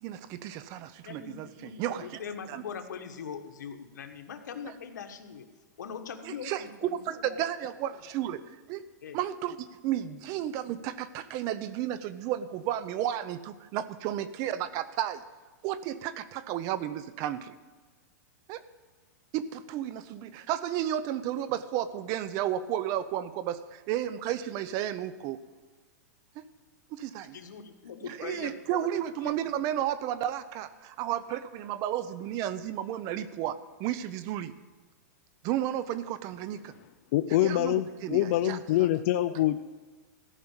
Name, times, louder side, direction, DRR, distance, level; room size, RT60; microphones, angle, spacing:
voice 1, 0.0-2.2 2.5-2.6 4.6-4.7 6.2-8.4 8.7-8.8 9.1-15.2 15.6-17.6 18.5-18.6 19.3-25.4 26.9-27.4 28.0-34.5 35.4-36.7 37.4-38.6, right 11 dB, 35° right, 14 dB, 0.7 m, -33 dB
voice 2, 1.0-5.5 5.8-7.4 9.0-9.2 10.3-10.4 27.3-28.6 29.2-29.3, left 7 dB, 90° left, 6 dB, 1.4 m, -42 dB
voice 3, 37.1-39.6, left 14 dB, 50° left, 9 dB, 0.4 m, -25 dB
14.0 x 5.7 x 8.8 m, 1.3 s
supercardioid pair, 150°, 9 cm